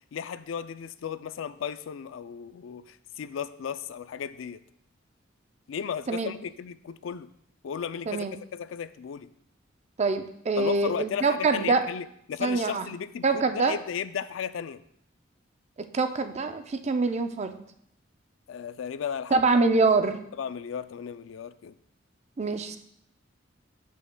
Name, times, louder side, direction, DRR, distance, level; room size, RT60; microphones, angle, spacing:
voice 1, 0.1-4.6 5.7-7.3 7.6-8.3 8.5-9.3 10.6-14.8 18.5-19.6 20.4-21.8, left 7 dB, 80° left, 13 dB, 0.4 m, -35 dB
voice 2, 10.0-11.9 12.4-12.8 13.2-13.7 15.9-17.6 19.3-20.3 22.4-22.8, right 3 dB, 35° right, 8 dB, 0.5 m, -25 dB
12.5 x 5.6 x 2.2 m, 0.70 s
head